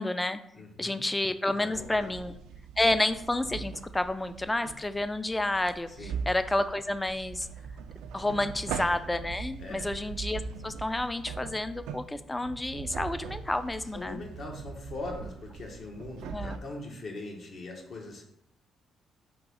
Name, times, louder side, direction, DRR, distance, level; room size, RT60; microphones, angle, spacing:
voice 1, 0.0-0.4 0.8-2.4 2.8-7.5 8.1-14.2 16.3-16.6, left 2 dB, 15° left, 12 dB, 0.3 m, -30 dB
voice 2, 0.5-1.0 1.6-2.1 5.9-6.2 9.6-9.9 13.9-18.2, left 2 dB, 60° left, 0 dB, 1.2 m, -41 dB
sound 1, 1.7-16.6, right 6 dB, 90° right, 0.3 m, -41 dB
3.7 x 3.0 x 4.8 m, 0.75 s
cardioid pair, 90°, 0 cm